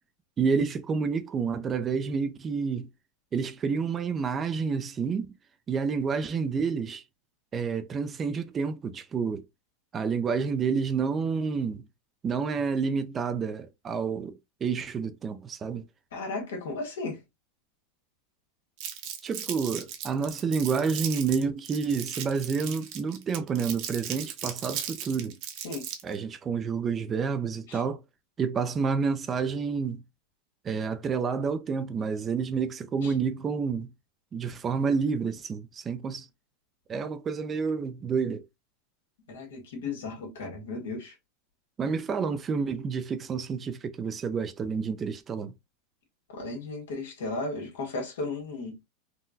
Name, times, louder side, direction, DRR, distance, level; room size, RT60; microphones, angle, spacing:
voice 1, 0.4-2.9 3.3-5.3 5.7-7.0 7.5-9.4 9.9-11.8 12.2-15.8 19.2-25.4 26.0-28.0 28.4-30.0 30.6-33.9 34.3-36.3 36.9-38.4 41.8-45.5, right 5 dB, 25° right, 0.4 m, -29 dB
voice 2, 16.1-17.2 25.6-25.9 27.7-27.8 33.0-33.1 39.3-41.1 46.3-48.8, left 3 dB, 90° left, 1.6 m, -35 dB
Crumpling crinkling, 18.8-26.2, right 9 dB, 55° right, 0.9 m, -37 dB
3.7 x 2.2 x 2.6 m
supercardioid pair, 135°, 0 cm